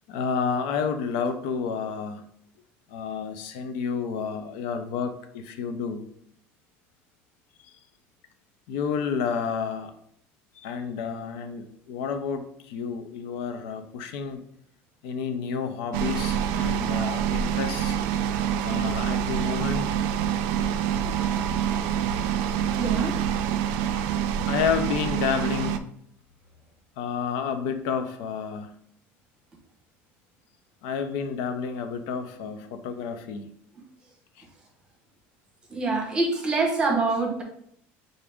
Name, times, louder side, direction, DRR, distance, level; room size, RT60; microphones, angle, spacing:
voice 1, 0.1-2.2 2.9-6.0 7.6-7.8 8.7-9.9 10.6-14.4 15.0-18.0 18.6-20.0 23.9-24.0 24.5-25.9 27.0-28.7 30.8-33.5, left 6 dB, 90° left, 8 dB, 0.5 m, -30 dB
sound 1, 15.9-25.8, right 9 dB, 80° right, 0.3 m, -26 dB
voice 2, 22.7-23.1 35.7-37.4, right 3 dB, 15° right, 1 dB, 1.0 m, -25 dB
5.8 x 2.6 x 3.5 m, 0.69 s
cardioid pair, 160°, 5 cm